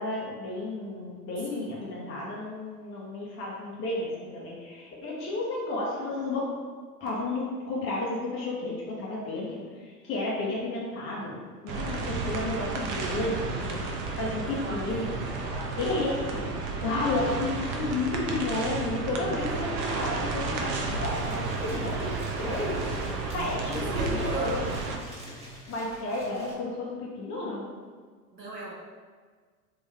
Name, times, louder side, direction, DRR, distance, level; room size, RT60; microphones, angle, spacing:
voice 1, 0.0-6.4 7.0-11.4 11.6-13.8 14.2-15.2 15.8-24.6 25.7-27.6, left 2 dB, 25° left, -5 dB, 0.8 m, -32 dB
sound 1, 11.7-25.0, right 3 dB, 30° right, 0.3 m, -32 dB
voice 2, 14.5-15.3 19.5-20.0 23.1-24.7 28.3-28.7, equal, 90° right, -3 dB, 1.0 m, -38 dB
sound 2, 20.5-20.6 20.8-26.5, equal, 15° right, 1.2 m, -45 dB
3.7 x 2.5 x 3.4 m, 1.6 s
figure-of-eight pair, 85°, 48 cm